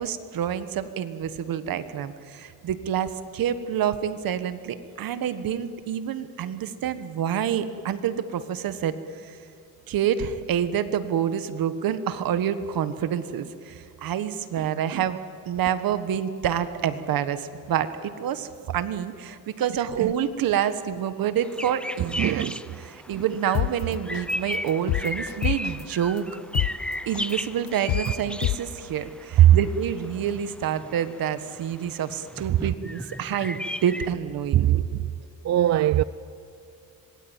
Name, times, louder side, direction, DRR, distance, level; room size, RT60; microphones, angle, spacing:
voice 1, 0.0-8.9 9.2-9.4 9.9-15.2 15.4-22.5 22.8-26.3 27.1-34.8, right 9 dB, 75° right, 1.5 m, -28 dB
sound 1, 21.4-34.1, left 1 dB, 5° left, 0.6 m, -36 dB
voice 2, 22.0-22.6 23.1-23.2 28.1-28.2 29.4-29.6 32.4-32.7 34.5-35.1 35.4-36.0, right 13 dB, 50° right, 0.5 m, -20 dB
sound 2, 23.5-23.7 24.1-24.3 24.7-25.8 26.2-26.3 26.5-26.7 27.1-27.3 27.7-28.1 28.4-28.6, left 16 dB, 75° left, 0.7 m, -25 dB
25.5 x 21.5 x 9.0 m
cardioid pair, 125°, 35 cm